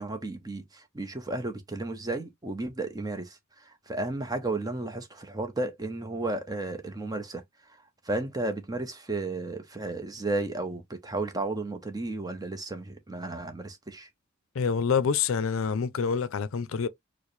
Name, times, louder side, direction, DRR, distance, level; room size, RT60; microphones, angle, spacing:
voice 1, 0.0-14.1, right 2 dB, 20° right, 0.7 m, -33 dB
voice 2, 14.5-16.9, left 6 dB, 85° left, 0.5 m, -27 dB
4.5 x 2.1 x 3.1 m
head